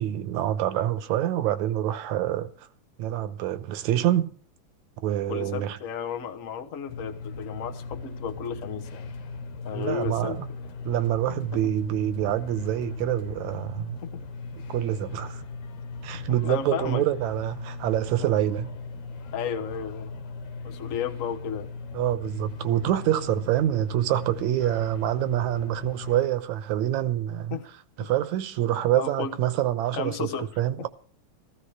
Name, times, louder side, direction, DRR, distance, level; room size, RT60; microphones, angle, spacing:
voice 1, 0.0-2.7 3.0-4.4 5.0-5.8 9.7-10.5 10.9-14.0 14.6-15.4 16.0-18.8 21.9-27.6 28.0-30.9, right 12 dB, 80° right, 2.2 m, -26 dB
voice 2, 5.3-9.1 9.6-10.4 11.3-11.6 14.0-14.2 16.1-17.0 18.2-18.3 19.3-20.1 20.6-21.7 23.2-23.4 27.5-27.7 28.0-28.1 28.9-29.3 29.9-30.5, left 8 dB, 70° left, 0.7 m, -33 dB
sound 1, 6.9-26.3, left 3 dB, 85° left, 2.6 m, -38 dB
16.0 x 14.5 x 4.9 m
omnidirectional pair, 3.4 m